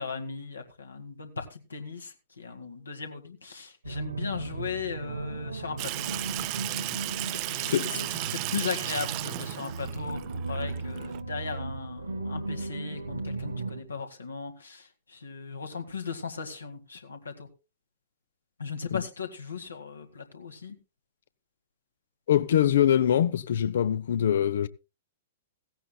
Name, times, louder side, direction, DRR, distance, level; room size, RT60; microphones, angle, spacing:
voice 1, 0.0-6.1 7.4-17.5 18.6-20.8, left 5 dB, 75° left, 1.9 m, -37 dB
sound 1, 3.8-13.8, right 3 dB, 75° right, 2.0 m, -36 dB
Water tap faucet / Sink (filling or washing), 5.8-11.2, right 21 dB, 35° right, 0.5 m, -35 dB
voice 2, 22.3-24.7, left 10 dB, 55° left, 0.7 m, -23 dB
16.5 x 16.5 x 2.3 m
figure-of-eight pair, 105°, 0 cm